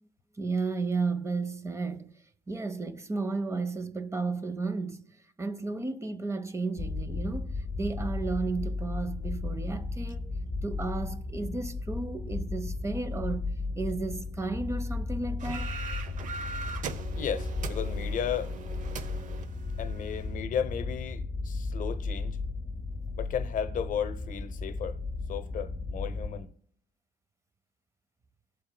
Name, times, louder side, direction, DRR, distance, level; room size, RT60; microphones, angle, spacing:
voice 1, 0.4-2.1 2.5-10.3 10.6-15.8, right 3 dB, 15° right, 0.6 m, -33 dB
sound 1, 6.8-26.4, left 3 dB, 20° left, 0.7 m, -35 dB
sound 2, 15.4-20.3, right 5 dB, 50° right, 0.7 m, -40 dB
voice 2, 17.1-18.5 19.8-22.4 23.2-25.0 25.3-26.5, left 8 dB, 50° left, 0.8 m, -34 dB
18.5 x 7.6 x 2.2 m
cardioid pair, 110°, 17 cm